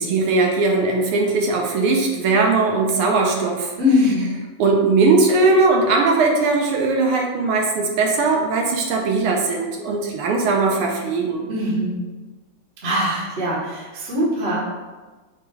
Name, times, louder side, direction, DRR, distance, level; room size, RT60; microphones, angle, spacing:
voice 1, 0.0-3.7 4.0-4.1 4.6-11.5, right 3 dB, 80° right, 0 dB, 1.5 m, -19 dB
voice 2, 3.8-4.3 11.5-12.0 12.8-14.7, left 1 dB, 40° right, -5 dB, 1.0 m, -21 dB
5.0 x 2.2 x 4.5 m, 1.3 s
omnidirectional pair, 2.4 m